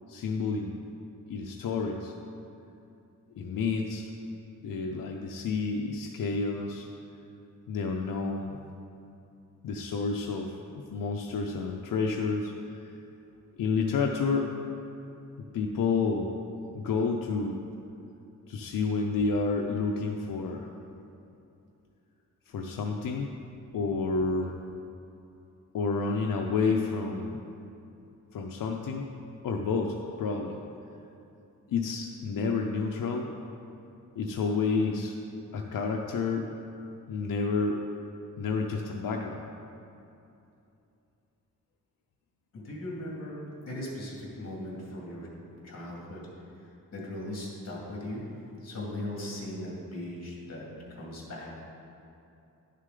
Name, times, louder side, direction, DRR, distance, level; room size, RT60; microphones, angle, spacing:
voice 1, 0.1-0.8 1.3-2.1 3.4-4.1 4.6-6.9 7.7-8.6 9.6-12.5 13.6-14.5 15.5-16.3 16.7-17.6 18.5-20.7 22.5-23.4 23.7-24.5 25.7-27.4 28.3-29.1 29.4-30.6 31.7-33.3 34.2-35.1 35.5-36.5 37.1-37.8 38.4-39.4, left 4 dB, 85° left, 1 dB, 0.6 m, -30 dB
voice 2, 42.5-43.4 43.7-46.2 46.6-48.2 48.6-51.6, left 1 dB, 50° left, -3 dB, 2.1 m, -39 dB
10.5 x 6.5 x 3.7 m, 2.7 s
wide cardioid pair, 170°, 33 cm